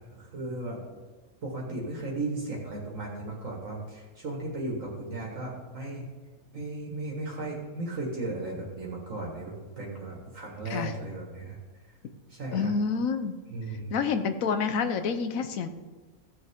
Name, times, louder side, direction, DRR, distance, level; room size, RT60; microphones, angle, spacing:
voice 1, 0.1-0.8 1.4-6.1 6.5-11.6 12.3-12.7 13.5-13.9, right 2 dB, 65° right, -2 dB, 2.0 m, -36 dB
voice 2, 12.5-13.3 13.9-15.7, left 5 dB, 70° left, 9 dB, 1.2 m, -28 dB
15.5 x 6.8 x 3.6 m, 1.3 s
omnidirectional pair, 1.5 m